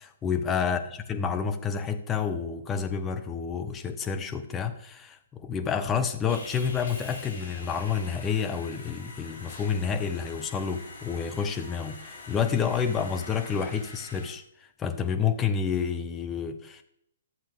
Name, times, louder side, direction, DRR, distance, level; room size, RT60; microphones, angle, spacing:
voice 1, 0.0-14.4 14.8-16.8, left 6 dB, 20° left, 7 dB, 0.9 m, -29 dB
Sawing, 6.3-14.3, left 3 dB, 65° left, 2.5 m, -44 dB
12.0 x 7.4 x 3.4 m, 0.73 s
figure-of-eight pair, 125°, 0 cm